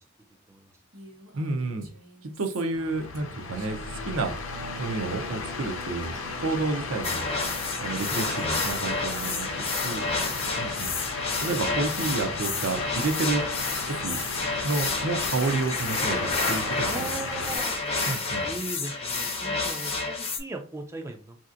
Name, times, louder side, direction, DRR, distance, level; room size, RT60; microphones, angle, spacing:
Female speech woman speaking, 0.9-11.0 11.4-15.3, right 1 dB, 70° right, 1.1 m, -51 dB
voice 1, 1.3-1.9 2.2-3.8 4.1-4.3 4.8-7.2 7.8-10.1 10.4-10.9 11.4-13.4 13.9-14.2 14.6-17.5 18.1-18.5, right 3 dB, 85° right, 5 dB, 0.6 m, -30 dB
sound 1, 2.7-17.6, left 3 dB, 75° left, 0.6 m, -35 dB
sound 2, 7.0-20.4, left 3 dB, 30° left, 0.6 m, -30 dB
voice 2, 9.9-10.6 11.4-11.8 16.9-17.8 18.4-21.4, right 2 dB, 15° right, 4 dB, 0.3 m, -39 dB
3.3 x 2.7 x 2.5 m, 0.39 s
head